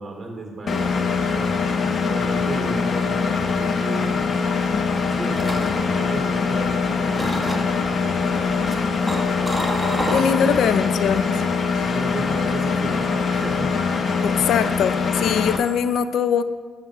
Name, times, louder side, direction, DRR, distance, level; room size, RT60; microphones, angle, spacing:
voice 1, 0.0-1.6 2.1-4.1 5.1-8.6 10.4-10.7 11.8-13.9, right 2 dB, 30° right, 0 dB, 2.5 m, -34 dB
Engine, 0.7-15.6, left 5 dB, 50° left, 0.8 m, -23 dB
sound 1, 5.0-6.8 7.1-7.9 8.4-10.7 11.0-11.3, right 1 dB, 10° right, 1.2 m, -30 dB
voice 2, 10.1-11.4 11.7-11.9 14.2-16.4, left 8 dB, 75° left, 12 dB, 0.4 m, -22 dB
9.9 x 7.4 x 3.8 m, 1.5 s
cardioid pair, 90°, 0 cm